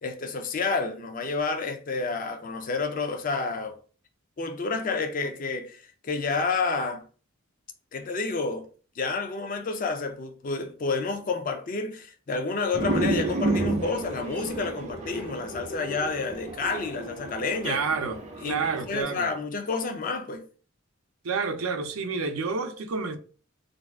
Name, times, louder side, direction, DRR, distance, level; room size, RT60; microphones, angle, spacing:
voice 1, 0.0-3.8 4.4-7.0 7.9-8.6 9.0-17.8 18.4-20.4, left 4 dB, 40° left, 0.4 m, -30 dB
sound 1, 12.7-19.0, right 2 dB, 35° right, 0.6 m, -31 dB
voice 2, 17.6-18.2 18.5-19.3 21.2-23.2, right 4 dB, 85° right, 0.5 m, -29 dB
2.6 x 2.3 x 3.3 m
head